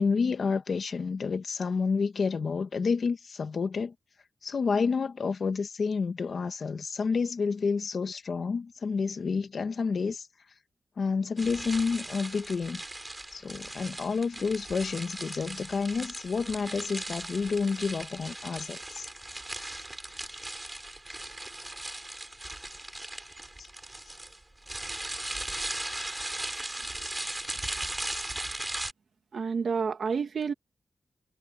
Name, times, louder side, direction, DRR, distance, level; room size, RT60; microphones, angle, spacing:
voice 1, 0.0-3.9 4.4-10.3 11.0-12.8 13.3-19.1 23.6-23.7, left 5 dB, 55° left, 1.5 m, -29 dB
sound 1, 11.4-28.9, right 1 dB, 15° right, 7.6 m, -38 dB
voice 2, 29.3-30.5, right 5 dB, 65° right, 2.4 m, -29 dB
wide cardioid pair, 160°, 0 cm